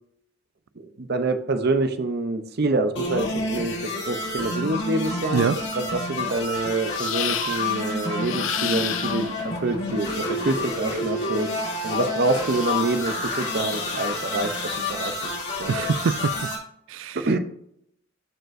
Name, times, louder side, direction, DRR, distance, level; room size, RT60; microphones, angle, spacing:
voice 1, 0.8-11.5 11.8-15.3 15.6-15.9 17.1-17.4, right 2 dB, 55° right, 0.8 m, -26 dB
sound 1, 2.9-16.6, left 2 dB, 60° left, 2.8 m, -29 dB
sound 2, 6.9-7.8 8.2-9.4 11.1-13.0, left 10 dB, 80° left, 0.6 m, -32 dB
voice 2, 15.7-16.5 16.9-17.2, right 6 dB, 75° right, 0.4 m, -24 dB
13.0 x 4.4 x 2.7 m
head